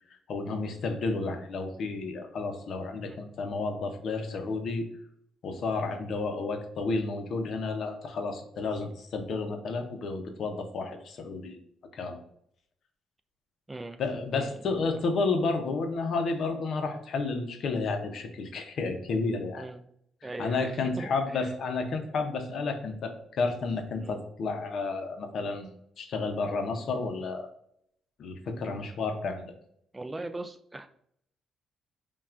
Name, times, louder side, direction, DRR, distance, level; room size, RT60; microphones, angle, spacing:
voice 1, 0.3-4.9 5.4-11.6 11.9-12.2 14.0-19.7 20.2-27.5 28.2-29.5, left 3 dB, 60° left, 5 dB, 0.6 m, -31 dB
voice 2, 13.7-14.0 14.3-14.5 14.9-15.0 19.6-19.8 20.2-21.5 24.0-24.2 29.9-30.9, right 2 dB, 15° right, 8 dB, 0.3 m, -40 dB
5.6 x 2.3 x 2.4 m, 0.69 s
cardioid pair, 125°, 0 cm